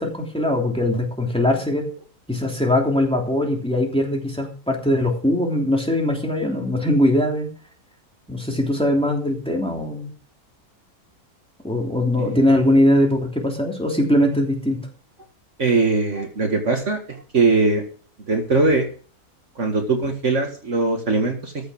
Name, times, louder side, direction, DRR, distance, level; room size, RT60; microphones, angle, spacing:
voice 1, 0.0-1.9 2.3-7.5 8.3-10.1 11.6-14.8, left 1 dB, 5° left, 0 dB, 3.1 m, -21 dB
voice 2, 15.6-17.8 18.3-18.9 19.6-21.7, right 3 dB, 55° right, 3 dB, 2.1 m, -21 dB
14.0 x 6.5 x 6.2 m, 0.40 s
omnidirectional pair, 1.6 m